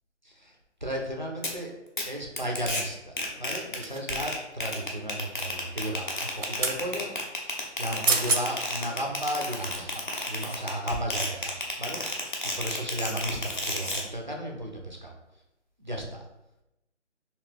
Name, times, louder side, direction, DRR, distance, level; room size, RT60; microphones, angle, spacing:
voice 1, 0.3-0.6 0.8-1.8 2.0-12.2 12.5-15.1 15.8-16.2, equal, 40° right, 1 dB, 0.4 m, -34 dB
sound 1, 1.4-1.5 2.0-2.1 2.4-2.8 3.2-3.8 4.1-14.0, left 1 dB, 40° left, 0.6 m, -32 dB
sound 2, 3.8-4.4 6.1-6.8 7.8-7.9 8.0-8.4 9.0-9.1, right 3 dB, 85° right, 0.7 m, -28 dB
2.9 x 2.8 x 3.3 m, 0.91 s
figure-of-eight pair, 180°, 37 cm